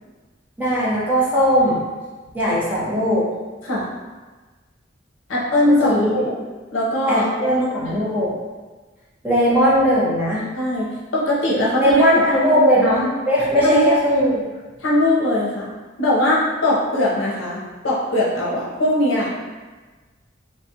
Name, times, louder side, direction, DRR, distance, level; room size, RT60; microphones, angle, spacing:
voice 1, 0.6-1.8 2.3-3.2 5.6-6.1 7.1-8.3 9.2-10.4 11.8-14.4, equal, 10° right, -9 dB, 0.8 m, -18 dB
voice 2, 5.3-6.4 6.7-8.1 10.5-12.2 12.5-12.7 13.6-13.9 14.8-15.7 16.0-19.5, left 1 dB, 80° left, -5 dB, 0.7 m, -21 dB
3.2 x 2.4 x 2.7 m, 1.3 s
head